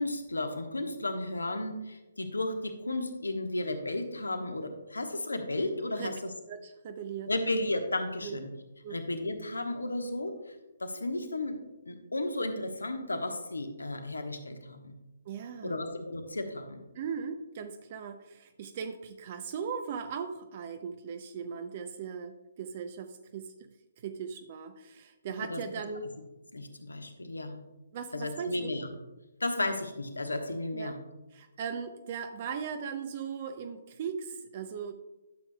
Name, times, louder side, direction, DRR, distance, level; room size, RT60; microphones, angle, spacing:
voice 1, 0.0-6.3 7.3-8.5 8.9-10.5 10.8-11.6 11.8-14.9 15.6-16.8 25.5-25.6 26.5-27.6 28.1-28.9 29.4-31.0, left 2 dB, 70° left, 6 dB, 1.1 m, -33 dB
voice 2, 6.5-7.3 8.2-8.4 8.8-9.0 15.3-15.8 16.9-23.5 24.0-26.1 27.9-28.7 30.7-31.0 31.3-34.9, right 6 dB, 35° right, 7 dB, 0.5 m, -38 dB
12.0 x 6.9 x 2.3 m, 1.0 s
figure-of-eight pair, 135°, 0 cm